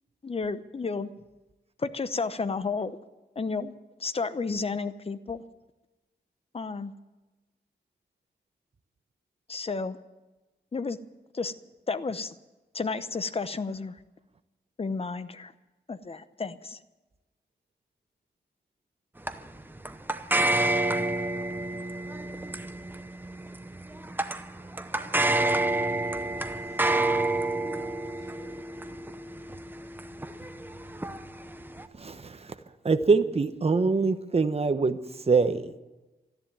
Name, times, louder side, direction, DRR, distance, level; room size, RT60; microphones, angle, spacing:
voice 1, 0.2-1.1 1.8-3.0 3.4-3.7 4.0-5.4 6.5-6.9 9.5-10.0 10.7-11.0 11.3-11.5 11.9-12.3 12.7-13.9 14.8-15.5 15.9-16.8, left 4 dB, 30° left, 13 dB, 0.8 m, -32 dB
sound 1, 19.3-31.9, right 2 dB, 10° right, 0.8 m, -29 dB
voice 2, 24.9-26.8 27.5-28.6, equal, 15° left, 2 dB, 5.2 m, -50 dB
voice 3, 31.9-32.6 32.8-35.7, right 4 dB, 35° right, 9 dB, 1.0 m, -24 dB
13.5 x 11.0 x 9.4 m, 1.1 s
wide cardioid pair, 115°, 19 cm